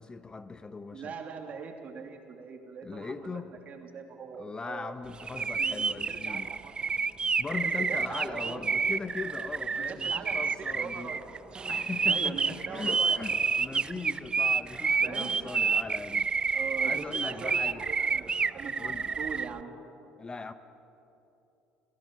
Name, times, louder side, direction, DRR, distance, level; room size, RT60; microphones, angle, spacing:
voice 1, 0.0-1.1 2.8-3.6 4.3-6.5 7.4-11.1 11.7-16.3 16.8-17.9 18.8-19.1 20.2-20.5, left 4 dB, 25° left, 11 dB, 1.0 m, -39 dB
voice 2, 0.9-4.9 5.4-6.7 7.9-8.8 9.9-10.3 10.7-11.3 12.0-13.2 13.9-14.2 15.0-15.4 16.5-18.3 18.5-18.8 19.2-19.7, right 6 dB, 45° right, 3 dB, 2.9 m, -41 dB
sound 1, 5.2-19.5, right 5 dB, 30° right, 0.5 m, -29 dB
27.5 x 16.0 x 6.9 m, 2.8 s
hypercardioid pair, 75°, 3 cm